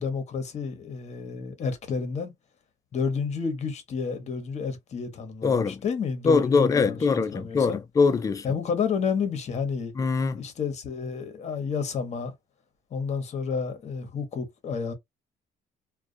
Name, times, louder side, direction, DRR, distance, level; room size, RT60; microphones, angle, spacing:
voice 1, 0.0-2.3 2.9-7.8 8.4-9.9 10.3-12.3 12.9-14.9, left 5 dB, 40° left, 0.8 m, -30 dB
voice 2, 5.4-5.8 6.2-8.4 10.0-10.4, left 4 dB, 20° left, 0.4 m, -23 dB
2.3 x 2.2 x 2.6 m
cardioid pair, 110°, 17 cm